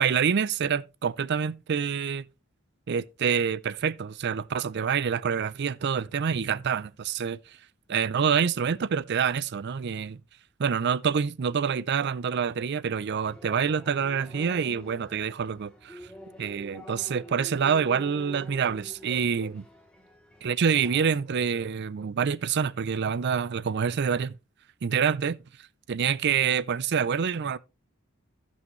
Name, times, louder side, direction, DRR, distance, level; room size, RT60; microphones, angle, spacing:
voice 1, 0.0-2.2 2.9-7.4 7.9-10.2 10.6-16.0 16.4-19.6 20.4-24.4 24.8-25.4 25.9-27.6, right 7 dB, 55° right, 0.4 m, -26 dB
sound 1, 13.2-21.2, equal, 5° left, 2.4 m, -47 dB
15.5 x 5.6 x 3.1 m
head